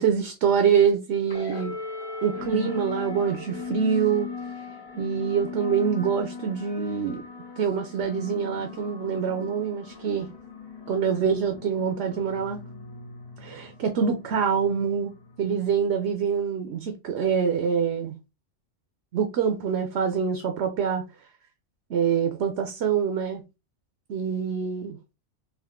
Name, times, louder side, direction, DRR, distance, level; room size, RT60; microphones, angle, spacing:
voice 1, 0.0-1.8 2.2-4.3 5.0-7.2 7.6-10.3 10.9-12.6 13.4-15.1 15.4-18.1 19.1-21.0 21.9-23.4 24.1-25.0, right 7 dB, 65° right, 0.9 m, -25 dB
sound 1, 1.3-16.1, left 4 dB, 30° left, 0.5 m, -38 dB
3.5 x 2.5 x 3.5 m
omnidirectional pair, 1.2 m